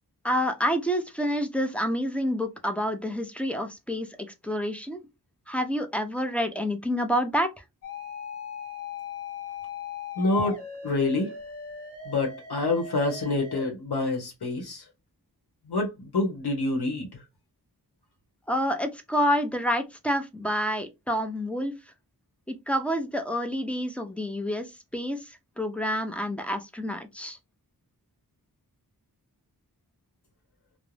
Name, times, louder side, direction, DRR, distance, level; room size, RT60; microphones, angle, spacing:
voice 1, 0.2-4.1 4.4-5.0 5.5-7.5 18.5-21.7 22.5-24.7 24.9-25.2 25.6-27.4, equal, 5° left, 0.4 m, -28 dB
sound 1, 7.8-13.7, left 5 dB, 35° left, 0.9 m, -39 dB
voice 2, 10.2-10.6 10.8-11.3 12.1-14.8 15.7-17.1, left 2 dB, 75° left, 0.9 m, -27 dB
2.5 x 2.0 x 3.1 m
wide cardioid pair, 65°, 39 cm